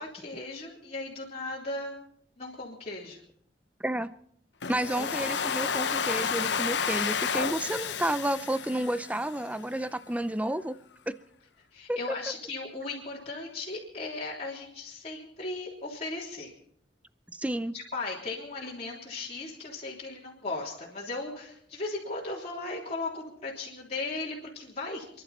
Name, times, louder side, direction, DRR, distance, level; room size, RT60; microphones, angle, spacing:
voice 1, 0.0-2.0 2.4-3.2 11.7-16.5 17.7-25.2, left 3 dB, 35° left, -6 dB, 3.4 m, -37 dB
voice 2, 3.8-4.1 4.7-10.8 11.1-11.2 11.9-12.0 17.3-17.7, right 1 dB, 10° right, 14 dB, 0.5 m, -31 dB
Domestic sounds home sounds, 4.6-9.6, left 6 dB, 75° left, 0.8 m, -31 dB
29.0 x 11.5 x 4.3 m, 0.68 s
head